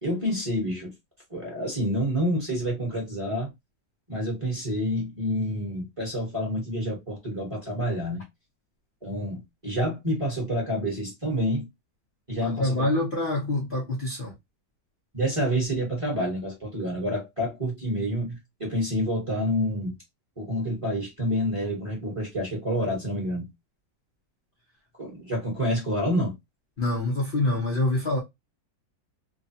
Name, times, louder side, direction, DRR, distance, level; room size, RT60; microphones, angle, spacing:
voice 1, 0.0-0.9 1.3-3.5 4.1-8.2 9.0-11.6 12.3-12.9 15.1-19.9 20.4-23.5 25.0-26.3, equal, 20° right, 0.9 m, -28 dB
voice 2, 12.4-14.3 26.8-28.2, left 2 dB, 45° left, 0.7 m, -26 dB
3.1 x 2.2 x 2.7 m
omnidirectional pair, 2.0 m